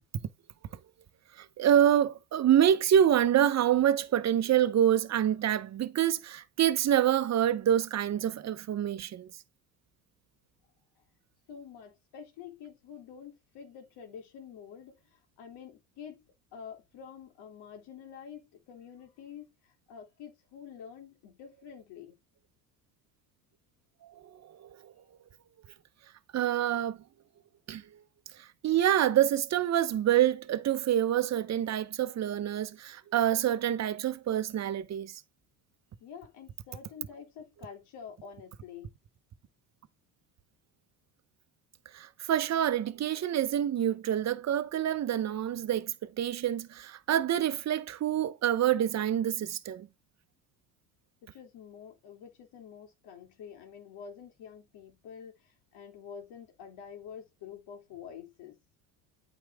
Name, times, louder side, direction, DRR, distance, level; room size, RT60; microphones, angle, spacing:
voice 1, 1.4-9.3 24.6-24.9 26.3-27.0 27.7-27.8 28.4-35.1 41.9-49.9, right 10 dB, 40° right, 0.9 m, -27 dB
voice 2, 11.5-16.2 16.5-22.2 36.0-38.9 51.2-58.6, left 7 dB, 65° left, 3.1 m, -48 dB
8.7 x 4.9 x 3.6 m
supercardioid pair, 85°, 42 cm